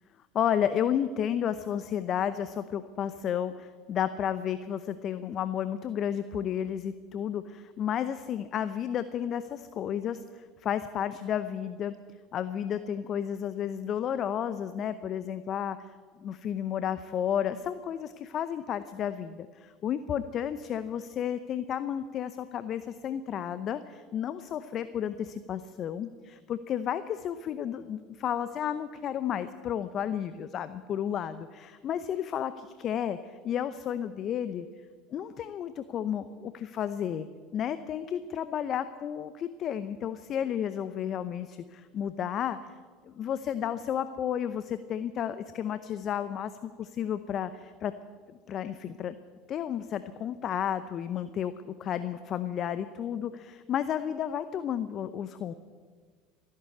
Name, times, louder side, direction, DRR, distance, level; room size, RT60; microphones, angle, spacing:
voice 1, 0.3-12.0 12.3-15.8 16.2-34.7 35.1-37.3 37.5-42.6 43.0-47.9 48.5-49.1 49.5-55.5, left 9 dB, 45° left, 12 dB, 0.7 m, -32 dB
14.5 x 11.5 x 8.6 m, 1.5 s
hypercardioid pair, 75°, 0 cm